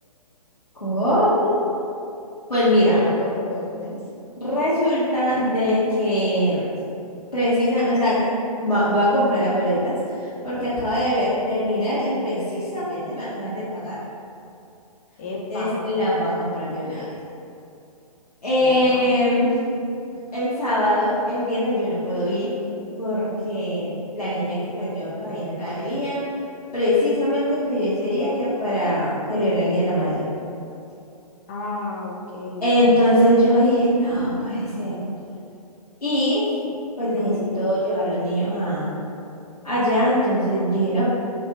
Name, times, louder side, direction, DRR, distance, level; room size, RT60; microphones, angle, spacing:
voice 1, 0.8-1.6 2.5-3.0 4.4-6.7 7.3-8.2 8.6-14.0 15.5-17.1 18.4-19.6 20.3-22.5 23.0-26.2 26.7-30.2 32.6-35.0 36.0-36.5 37.0-38.9 39.6-41.1, equal, 80° left, -11 dB, 1.1 m, -22 dB
voice 2, 2.9-4.0 15.2-15.9 16.3-16.7 18.6-19.0 31.5-33.0, left 2 dB, 20° left, -3 dB, 0.4 m, -32 dB
4.8 x 2.6 x 2.9 m, 2.6 s
figure-of-eight pair, 130°, 20 cm